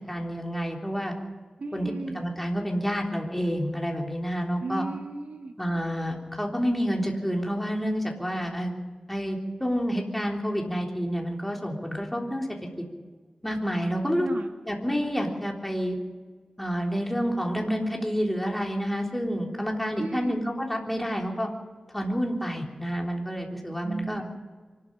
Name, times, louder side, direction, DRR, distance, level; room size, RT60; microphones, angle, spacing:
voice 1, 0.1-1.1 1.7-4.8 5.6-8.7 9.1-12.5 13.4-14.3 14.7-16.0 16.6-21.5 21.9-24.2, equal, 5° left, 0 dB, 3.6 m, -29 dB
voice 2, 1.6-2.2 4.6-5.5 14.2-14.5 20.0-20.4 23.8-24.4, right 3 dB, 85° right, 3 dB, 2.3 m, -35 dB
24.0 x 13.0 x 8.8 m, 1.4 s
wide cardioid pair, 95°, 2 cm